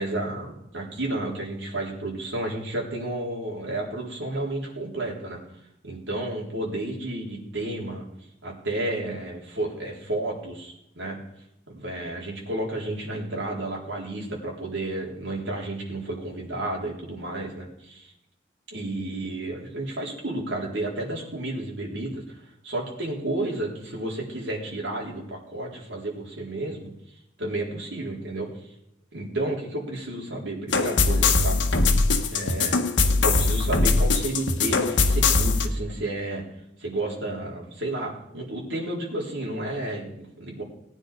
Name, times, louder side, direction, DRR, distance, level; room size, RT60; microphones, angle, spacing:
voice 1, 0.0-5.4 5.8-8.0 8.4-11.2 11.7-18.1 18.7-22.4 22.6-26.9 27.4-28.7 29.1-31.6 32.3-32.8 33.2-36.4 36.8-40.6, right 2 dB, 85° right, -2 dB, 3.9 m, -31 dB
sound 1, 30.7-35.7, left 3 dB, 80° left, 1.3 m, -21 dB
19.0 x 9.6 x 5.1 m, 0.82 s
head